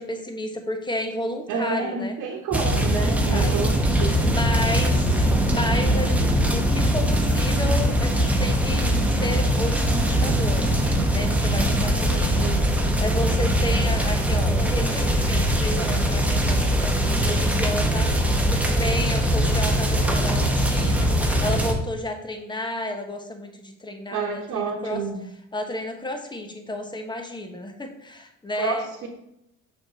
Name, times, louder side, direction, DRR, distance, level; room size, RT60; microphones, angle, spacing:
voice 1, 0.0-2.1 2.9-3.5 4.2-8.9 9.2-10.7 11.1-12.4 13.0-18.1 18.5-25.0 25.5-29.1, left 1 dB, 15° left, 4 dB, 1.2 m, -32 dB
voice 2, 1.5-4.2 11.9-12.7 24.1-25.2 28.6-29.1, right 5 dB, 60° right, -3 dB, 1.3 m, -29 dB
sound 1, 2.5-21.7, equal, 5° right, 1.0 m, -21 dB
6.2 x 5.9 x 3.7 m, 0.81 s
cardioid pair, 100°, 33 cm